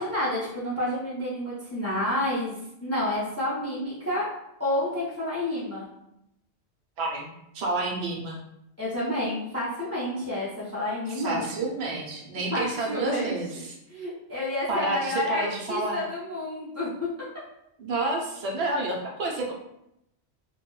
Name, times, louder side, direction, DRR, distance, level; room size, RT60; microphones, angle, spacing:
voice 1, 0.0-2.5 2.8-4.3 4.6-5.9 8.8-11.4 12.5-13.3 13.9-17.1, left 1 dB, 20° left, -8 dB, 0.4 m, -29 dB
voice 2, 7.0-8.4 11.1-13.7 14.7-16.0 17.8-19.5, right 2 dB, 70° right, 0 dB, 0.8 m, -29 dB
2.2 x 2.0 x 3.0 m, 0.82 s
omnidirectional pair, 1.1 m